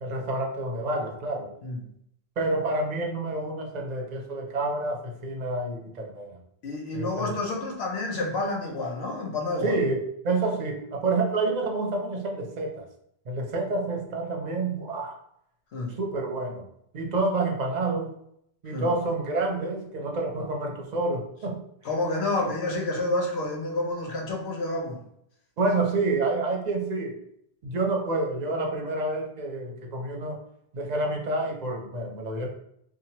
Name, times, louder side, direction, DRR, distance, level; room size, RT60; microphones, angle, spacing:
voice 1, 0.0-1.5 2.4-6.3 6.9-7.4 9.6-12.9 13.3-15.2 16.0-16.7 16.9-18.2 18.6-21.6 25.6-27.1 27.6-30.4 30.7-32.5, right 2 dB, 50° right, 2 dB, 0.6 m, -28 dB
voice 2, 6.6-9.8 15.7-16.0 18.7-18.9 21.8-25.0, left 2 dB, 85° left, 1 dB, 0.9 m, -29 dB
2.9 x 2.3 x 2.8 m, 0.72 s
omnidirectional pair, 1.0 m